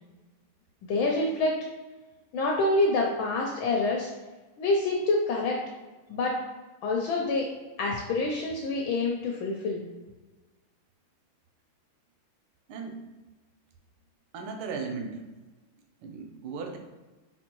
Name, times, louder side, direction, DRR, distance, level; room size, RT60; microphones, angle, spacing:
voice 1, 0.8-1.5 2.3-4.1 4.6-5.6 6.1-6.3 6.8-7.5 7.8-9.8, left 2 dB, 75° left, -1 dB, 1.4 m, -26 dB
voice 2, 14.3-15.2 16.0-16.8, right 4 dB, 85° right, 3 dB, 1.6 m, -36 dB
4.3 x 4.1 x 3.0 m, 1.2 s
omnidirectional pair, 2.3 m